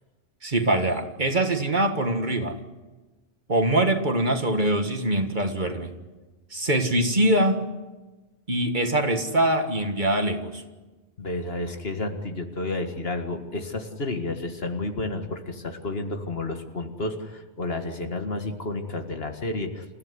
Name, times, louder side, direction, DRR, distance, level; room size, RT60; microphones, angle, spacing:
voice 1, 0.4-2.6 3.5-5.9 6.5-7.7 8.5-10.6, right 1 dB, 45° right, 6 dB, 1.9 m, -23 dB
voice 2, 11.2-19.8, left 2 dB, 60° left, 5 dB, 2.1 m, -31 dB
28.0 x 15.5 x 9.7 m, 1.2 s
omnidirectional pair, 1.2 m